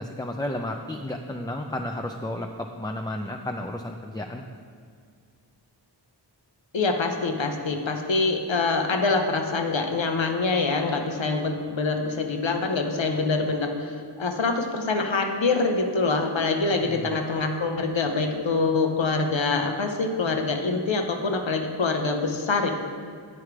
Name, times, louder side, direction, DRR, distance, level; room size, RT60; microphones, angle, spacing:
voice 1, 0.0-4.4 16.8-17.1, left 1 dB, 10° left, 3 dB, 0.4 m, -32 dB
voice 2, 6.7-22.7, left 3 dB, 90° left, 4 dB, 0.8 m, -25 dB
9.8 x 4.9 x 4.7 m, 2.2 s
wide cardioid pair, 40°, 44 cm